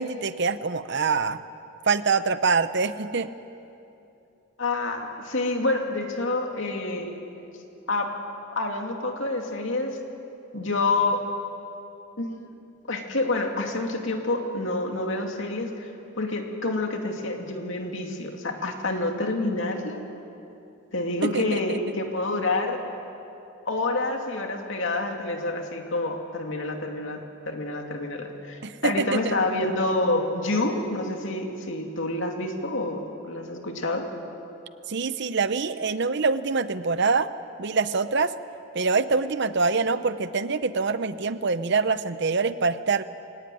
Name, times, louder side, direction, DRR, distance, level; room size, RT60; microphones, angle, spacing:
voice 1, 0.0-1.4 1.8-3.3 21.2-21.8 28.6-29.3 34.9-37.3 37.6-38.3 38.7-43.0, right 4 dB, 55° right, 13 dB, 0.7 m, -25 dB
voice 2, 4.6-7.2 7.9-8.1 8.5-10.0 10.5-11.2 12.2-12.5 12.9-15.9 16.2-20.0 20.9-22.8 23.7-27.2 27.5-34.1, left 2 dB, 60° left, 2 dB, 2.7 m, -28 dB
23.5 x 18.5 x 9.4 m, 2.8 s
head